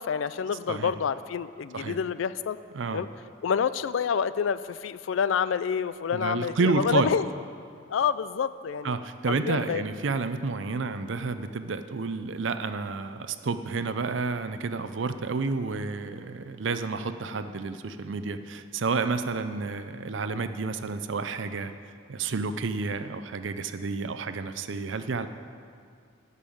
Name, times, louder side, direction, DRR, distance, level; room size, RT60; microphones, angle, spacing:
voice 1, 0.0-2.6 2.9-3.1 3.4-7.3 7.9-9.0 9.3-9.8, left 7 dB, 85° left, 15 dB, 0.4 m, -28 dB
voice 2, 2.7-3.1 6.1-7.1 8.8-21.7 22.1-25.3, right 4 dB, 70° right, 10 dB, 0.6 m, -30 dB
11.5 x 5.4 x 8.5 m, 2.2 s
head